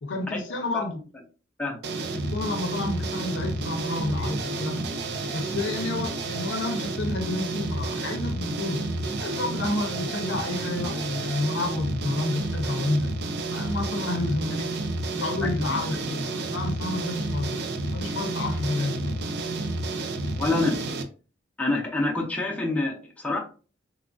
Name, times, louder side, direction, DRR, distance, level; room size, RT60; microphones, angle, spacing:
voice 1, 0.0-1.0 2.3-4.8 5.3-8.8 9.2-13.1 13.5-14.8 15.1-19.2, left 2 dB, 70° left, 0.5 m, -30 dB
sound 1, 1.8-21.0, right 2 dB, 60° right, 0.4 m, -30 dB
voice 2, 20.4-20.8 21.6-23.4, left 2 dB, 10° left, 0.6 m, -27 dB
3.1 x 2.3 x 2.3 m
head